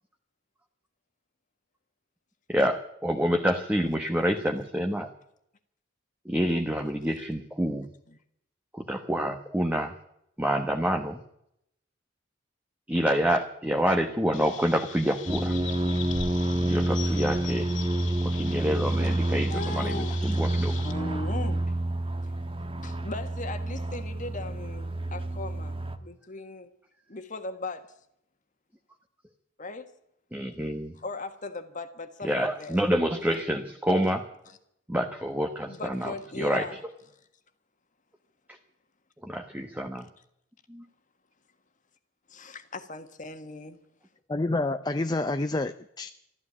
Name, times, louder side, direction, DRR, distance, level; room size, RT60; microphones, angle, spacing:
voice 1, 2.5-5.1 6.2-7.9 8.7-9.9 10.4-11.2 12.9-15.5 16.7-17.7 18.3-20.7 30.3-30.9 32.2-34.2 34.9-36.1 36.4-36.6 39.2-40.0 40.7-40.8, equal, 10° right, 1.2 m, -27 dB
Chirp tweet, 14.3-20.9, left 9 dB, 85° left, 2.0 m, -42 dB
sound 1, 15.3-26.0, right 1 dB, 30° right, 1.3 m, -28 dB
voice 2, 19.5-20.4 20.8-21.7 22.2-22.3 22.8-26.7 27.1-27.9 29.6-29.9 30.9-32.8 34.5-34.6 35.7-36.8 39.9-40.0 42.3-43.8, left 2 dB, 45° left, 1.6 m, -38 dB
voice 3, 44.3-46.1, left 2 dB, 20° left, 0.6 m, -28 dB
13.5 x 12.5 x 8.5 m
head